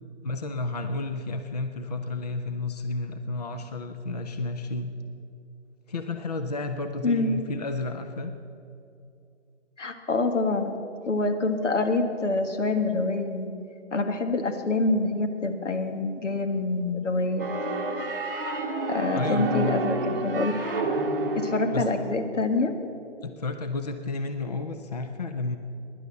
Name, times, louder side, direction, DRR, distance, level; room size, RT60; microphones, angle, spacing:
voice 1, 0.2-4.9 5.9-8.3 19.1-19.8 21.7-21.9 23.2-25.6, left 3 dB, 35° left, 7 dB, 0.6 m, -31 dB
voice 2, 9.8-10.7 11.1-13.5 13.9-17.5 18.9-20.6 21.4-22.7, left 3 dB, 80° left, 6 dB, 1.9 m, -26 dB
sound 1, 17.4-22.1, right 2 dB, 15° right, 1.1 m, -29 dB
16.0 x 11.0 x 7.0 m, 2.6 s
hypercardioid pair, 175°, 36 cm